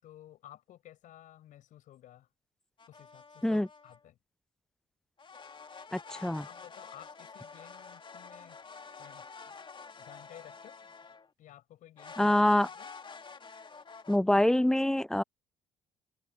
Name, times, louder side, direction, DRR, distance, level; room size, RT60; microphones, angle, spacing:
voice 1, 0.0-2.3 2.9-4.2 6.4-8.6 9.0-9.6 10.0-10.8 11.4-12.9, left 13 dB, 60° left, 6.2 m, -54 dB
sound 1, 2.8-4.0 5.2-11.3 12.0-14.2, left 5 dB, 35° left, 2.7 m, -48 dB
voice 2, 5.9-6.5 12.2-12.7 14.1-15.2, left 1 dB, 5° left, 0.4 m, -25 dB
open air
hypercardioid pair, 50°, 15 cm